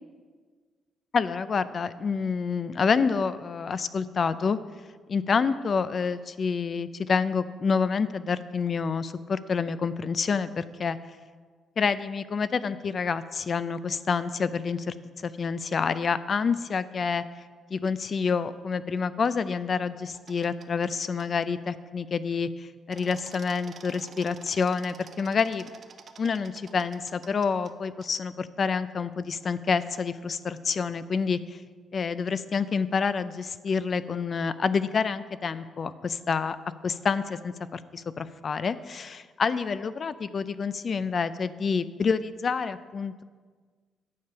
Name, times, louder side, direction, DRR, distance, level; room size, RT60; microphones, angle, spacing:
voice 1, 1.1-4.6 5.1-11.0 11.8-14.9 15.2-17.2 17.7-25.7 26.2-31.4 31.9-36.6 36.8-43.2, left 5 dB, 45° left, 14 dB, 0.4 m, -28 dB
sound 1, 20.1-20.9 21.2-21.3 22.9-27.7 28.0-28.1 29.8-30.1, right 6 dB, 50° right, 0.7 m, -49 dB
9.5 x 6.9 x 5.7 m, 1.5 s
cardioid pair, 90°, 0 cm